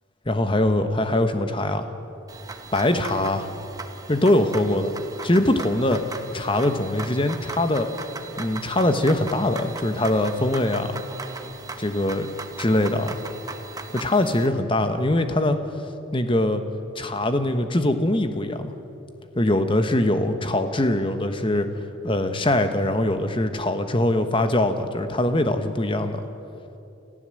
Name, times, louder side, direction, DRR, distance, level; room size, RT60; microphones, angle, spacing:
voice 1, 0.3-1.9 2.7-3.5 4.1-4.9 5.2-7.9 8.4-10.9 11.8-12.3 12.6-13.2 13.9-15.6 16.1-16.6 16.9-18.7 19.3-21.7 22.0-26.2, left 1 dB, 25° left, 8 dB, 1.1 m, -22 dB
sound 1, 2.3-14.5, right 3 dB, 15° right, 1.0 m, -38 dB
28.0 x 15.0 x 7.7 m, 2.9 s
head